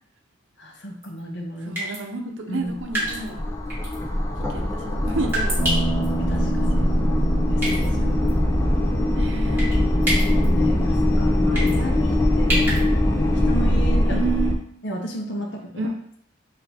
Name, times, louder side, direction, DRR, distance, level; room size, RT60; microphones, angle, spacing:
voice 1, 0.6-1.9 2.5-2.7 6.3-6.9 7.5-8.1 9.9-12.8 13.5-14.2 14.8-15.7, equal, 60° left, 1 dB, 0.9 m, -32 dB
sound 1, 1.0-1.2 1.8-2.0 2.9-3.3 3.7-4.0 5.3-6.1 7.6-7.9 8.3-8.4 9.6-9.8 10.0-10.5 11.5-11.8 12.5-12.8, right 1 dB, 10° right, 1.5 m, -26 dB
voice 2, 1.7-3.5 4.5-5.6 6.2-6.9 7.9-8.4 9.2-9.7 14.0-14.6 15.8-15.9, right 3 dB, 70° right, 4 dB, 0.7 m, -31 dB
sound 2, 2.6-14.5, left 1 dB, 15° left, 0.4 m, -21 dB
sound 3, 5.6-13.9, right 3 dB, 35° left, 1.2 m, -33 dB
4.2 x 2.7 x 4.2 m, 0.64 s
head